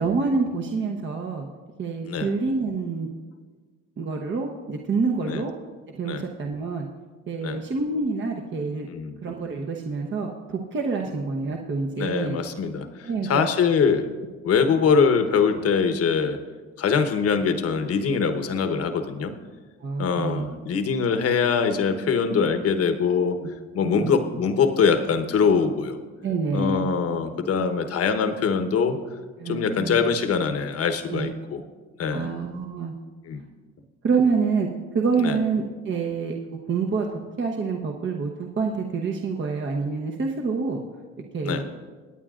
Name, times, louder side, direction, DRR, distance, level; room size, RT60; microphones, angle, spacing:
voice 1, 0.0-1.5 1.8-3.1 4.0-5.5 5.9-6.9 7.3-8.9 9.2-12.4 13.0-13.4 19.8-20.5 23.8-24.2 26.2-26.9 29.4-30.0 31.1-31.3 32.1-32.9 34.0-34.7 34.9-36.3 36.7-40.8 41.3-41.6, right 4 dB, 35° right, 1 dB, 1.0 m, -27 dB
voice 2, 12.0-14.1 14.4-16.4 16.8-19.3 20.0-23.4 23.7-26.0 26.5-29.0 29.5-31.6 32.0-32.3 33.2-33.4 35.2-35.4 41.4-41.6, left 5 dB, 50° left, 8 dB, 1.1 m, -23 dB
23.5 x 8.8 x 2.5 m, 1.4 s
supercardioid pair, 90°, 32 cm